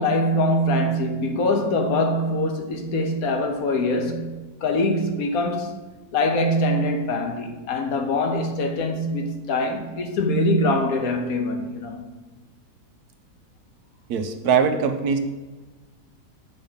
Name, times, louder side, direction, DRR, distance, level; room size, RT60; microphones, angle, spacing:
voice 1, 0.0-4.3 4.6-5.7 6.1-12.0, left 1 dB, 65° left, 1.2 m, -23 dB
voice 2, 14.1-15.2, right 6 dB, 75° right, 1.2 m, -21 dB
7.9 x 3.6 x 5.5 m
omnidirectional pair, 1.7 m